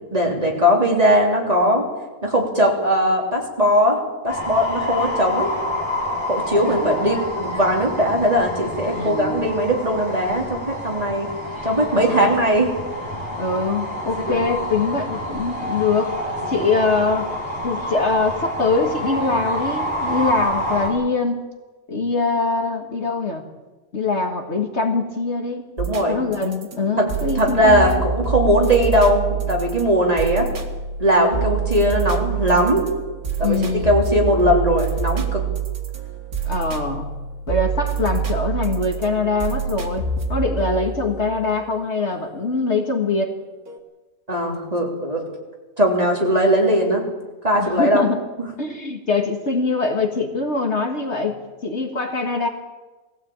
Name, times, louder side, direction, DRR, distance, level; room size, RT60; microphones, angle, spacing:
voice 1, 0.1-1.8 2.2-5.5 6.3-11.3 11.6-12.7 14.3-14.4 16.4-16.6 25.8-26.2 27.0-27.1 27.4-30.5 31.0-32.8 33.4-33.6 33.8-35.4 44.3-45.2 45.8-47.0 47.4-48.1, equal, 25° right, -1 dB, 3.6 m, -19 dB
sound 1, 4.3-20.9, left 1 dB, 15° left, 5.5 m, -28 dB
voice 2, 6.7-7.1 8.9-9.5 11.9-12.3 13.4-16.2 16.5-17.3 17.6-21.4 21.9-23.4 23.9-25.7 26.1-28.0 33.4-34.0 36.4-37.1 37.5-40.0 40.3-43.3 47.6-48.2 48.6-52.5, left 3 dB, 50° left, 3 dB, 2.1 m, -23 dB
sound 2, 25.8-42.8 43.7-43.8, right 6 dB, 85° right, 2.6 m, -27 dB
20.5 x 15.5 x 8.8 m, 1.2 s
omnidirectional pair, 1.5 m